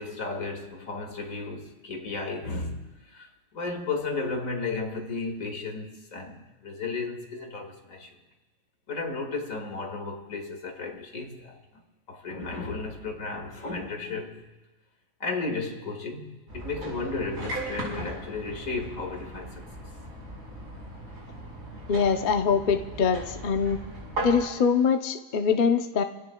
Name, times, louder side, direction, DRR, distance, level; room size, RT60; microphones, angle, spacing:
voice 1, 0.0-8.2 8.9-11.8 12.1-14.4 15.2-19.6, left 3 dB, 75° left, 2.3 m, -34 dB
sound 1, 16.5-24.5, right 1 dB, 90° right, 5.6 m, -37 dB
voice 2, 21.9-23.8 24.2-26.0, left 6 dB, 45° left, 0.7 m, -23 dB
27.5 x 17.5 x 2.3 m
omnidirectional pair, 1.4 m